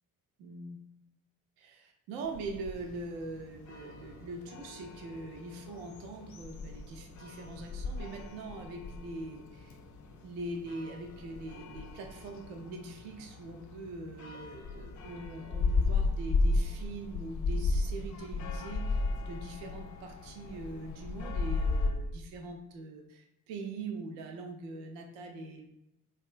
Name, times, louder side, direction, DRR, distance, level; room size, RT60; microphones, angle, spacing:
voice 1, 0.4-0.8 1.6-9.8 10.2-25.7, right 2 dB, 65° right, 3 dB, 0.5 m, -42 dB
sound 1, 2.2-21.9, left 3 dB, 40° left, 0.5 m, -35 dB
2.9 x 2.3 x 2.4 m, 0.85 s
figure-of-eight pair, 40°, 46 cm